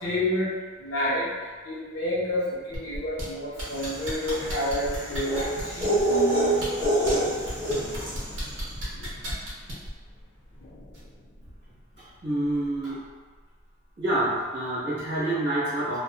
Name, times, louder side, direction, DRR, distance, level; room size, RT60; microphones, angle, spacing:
voice 1, 0.0-0.5 0.8-1.3 1.6-6.0 8.0-8.1 8.9-9.1, left 1 dB, 90° left, -7 dB, 0.9 m, -29 dB
sound 1, 2.7-13.1 13.4-13.5, left 3 dB, 60° left, 0.4 m, -41 dB
sound 2, 2.7-3.2 3.6-6.0 6.5-7.1 7.5-9.9 10.9-11.0, equal, 85° right, 0.8 m, -34 dB
sound 3, 3.7-8.3, right 1 dB, 20° right, 1.3 m, -26 dB
voice 2, 12.2-13.0 14.0-16.0, right 1 dB, 65° right, -10 dB, 1.1 m, -27 dB
2.4 x 2.4 x 2.4 m, 1.4 s
head